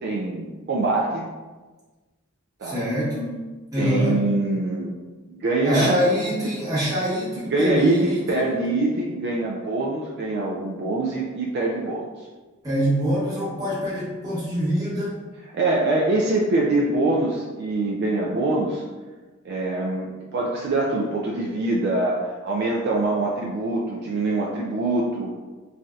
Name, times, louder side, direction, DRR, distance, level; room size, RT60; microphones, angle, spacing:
voice 1, 0.0-1.3 2.6-2.8 3.8-4.9 5.3-6.0 7.5-12.1 15.5-18.8 19.4-25.3, right 2 dB, 50° right, -3 dB, 0.3 m, -24 dB
voice 2, 2.6-3.4 3.7-4.3 5.6-8.4 12.6-15.1, equal, 15° right, -9 dB, 1.0 m, -24 dB
3.1 x 2.7 x 2.3 m, 1.3 s
head